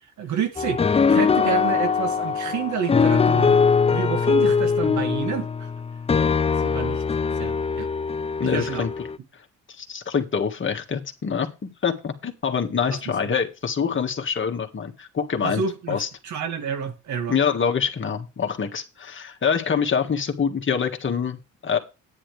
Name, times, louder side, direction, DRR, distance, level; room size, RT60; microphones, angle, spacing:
voice 1, 0.2-5.7 6.6-7.0 7.4-7.9 8.4-8.8 13.1-13.2 15.4-17.4, right 7 dB, 70° right, 2.1 m, -29 dB
sound 1, 0.6-9.2, left 5 dB, 20° left, 0.4 m, -21 dB
voice 2, 8.4-8.9 9.8-16.1 17.3-21.8, left 6 dB, 40° left, 1.9 m, -25 dB
9.8 x 9.6 x 3.4 m
cardioid pair, 90°, 30 cm